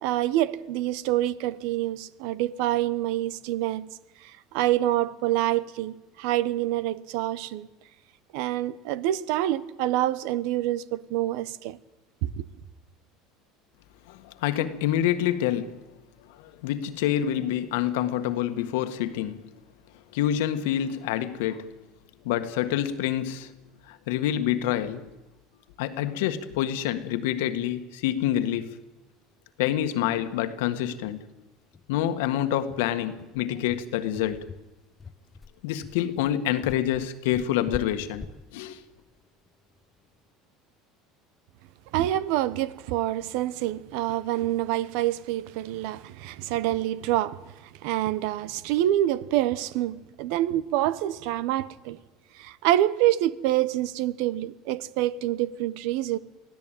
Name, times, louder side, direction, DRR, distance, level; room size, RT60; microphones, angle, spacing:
voice 1, 0.0-3.9 4.2-7.7 8.3-11.8 12.2-12.5 41.9-47.5 47.8-52.0 52.3-56.2, right 14 dB, 75° right, 1.0 m, -26 dB
voice 2, 14.1-15.8 16.3-19.4 20.1-21.7 22.2-23.5 23.8-25.1 25.8-28.8 29.6-31.2 31.9-34.5 35.6-38.3 38.5-38.8, left 11 dB, 85° left, 1.7 m, -27 dB
sound 1, 30.2-30.3 30.6-30.8 31.2-31.3 31.7-40.2, left 4 dB, 25° left, 1.1 m, -44 dB
23.5 x 16.0 x 9.1 m
supercardioid pair, 110°, 0 cm